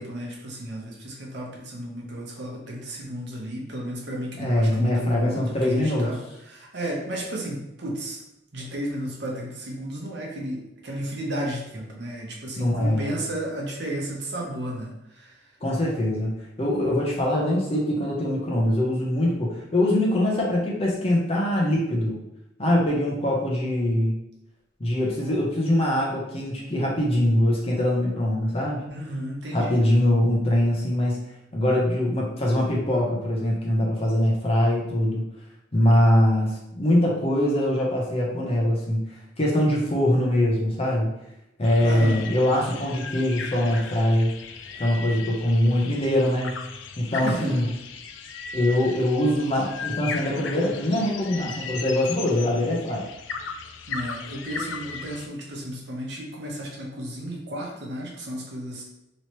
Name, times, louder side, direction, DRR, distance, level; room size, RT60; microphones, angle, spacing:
voice 1, 0.0-6.2 6.5-8.2 8.5-15.3 28.9-29.8 41.8-42.3 47.2-47.6 53.9-58.8, right 1 dB, 65° right, -2 dB, 0.9 m, -33 dB
voice 2, 4.4-6.1 12.6-13.1 15.6-16.3 16.6-22.2 22.6-24.1 24.8-28.8 29.5-31.2 31.5-35.2 35.7-39.0 39.4-41.1 41.6-44.3 44.8-46.5 47.0-47.7 48.5-53.0, left 1 dB, 35° left, -3 dB, 0.7 m, -23 dB
sound 1, 41.6-55.3, left 5 dB, 85° left, 0.4 m, -37 dB
3.0 x 2.9 x 3.0 m, 0.86 s
head